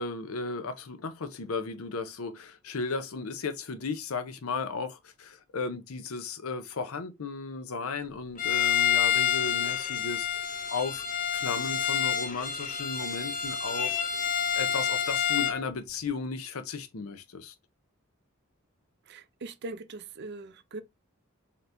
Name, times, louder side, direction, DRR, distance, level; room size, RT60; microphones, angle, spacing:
voice 1, 0.0-11.0 11.3-14.0 14.5-17.5, left 4 dB, 80° left, 0.7 m, -35 dB
Bowed string instrument, 8.4-15.6, left 8 dB, 40° left, 0.7 m, -28 dB
voice 2, 19.1-20.8, right 3 dB, 55° right, 0.5 m, -41 dB
3.9 x 2.9 x 3.3 m
head